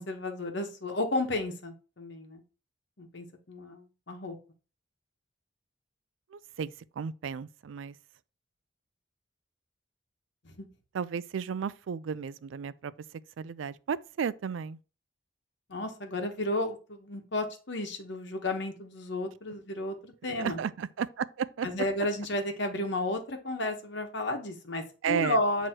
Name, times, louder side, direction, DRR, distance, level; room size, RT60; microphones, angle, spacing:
voice 1, 0.0-2.4 3.0-4.4 10.4-10.7 15.7-20.6 21.6-25.7, left 1 dB, 65° left, 1.2 m, -32 dB
voice 2, 6.3-7.9 10.9-14.8 20.4-21.7 25.0-25.4, right 7 dB, 85° right, 0.4 m, -34 dB
7.6 x 3.0 x 4.5 m
head